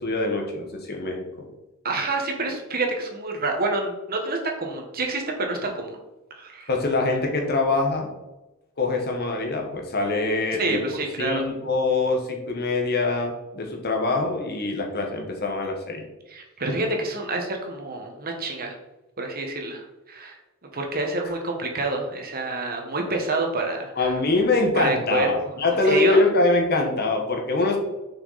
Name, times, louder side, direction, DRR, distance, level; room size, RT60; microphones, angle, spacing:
voice 1, 0.0-1.5 6.7-8.1 8.8-16.0 24.0-27.8, left 3 dB, 50° left, 2 dB, 1.4 m, -24 dB
voice 2, 1.8-6.0 6.4-6.7 10.6-11.4 16.3-18.8 19.2-20.4 20.7-24.1 24.7-25.3 25.8-26.2, right 2 dB, 45° right, 2 dB, 1.3 m, -27 dB
6.3 x 6.0 x 4.1 m, 1.0 s
head